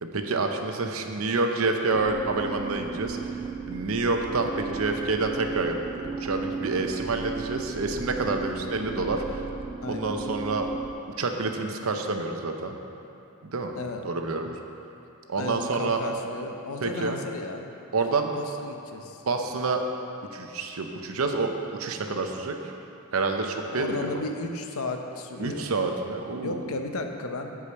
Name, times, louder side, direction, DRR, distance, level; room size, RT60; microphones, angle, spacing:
voice 1, 0.0-3.2 3.7-9.4 9.9-10.7 11.2-12.8 13.4-13.7 14.0-14.6 15.3-16.0 16.8-17.2 17.9-18.3 19.2-19.8 20.3-21.5 21.8-22.5 23.1-24.1 25.4-26.6, right 3 dB, 80° right, 4 dB, 0.7 m, -28 dB
sound 1, 1.9-11.0, right 4 dB, 25° right, 0.3 m, -35 dB
voice 2, 9.8-10.2 13.7-14.0 15.3-17.7 18.3-19.2 23.7-25.7 26.4-27.6, left 2 dB, 85° left, 5 dB, 0.7 m, -34 dB
8.2 x 5.0 x 6.9 m, 2.8 s
head